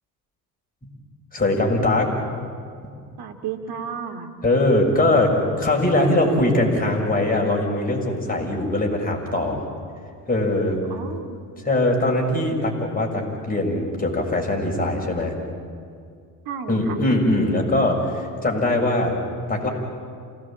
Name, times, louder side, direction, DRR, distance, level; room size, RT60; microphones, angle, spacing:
voice 1, 1.3-2.1 4.4-9.6 10.3-10.8 11.6-15.3 16.7-19.1 19.5-19.7, left 1 dB, 20° left, 0 dB, 6.8 m, -21 dB
voice 2, 3.2-4.3 10.9-11.5 16.5-17.0, right 7 dB, 50° right, 5 dB, 2.7 m, -33 dB
28.5 x 18.0 x 9.0 m, 2.3 s
figure-of-eight pair, 60°, 47 cm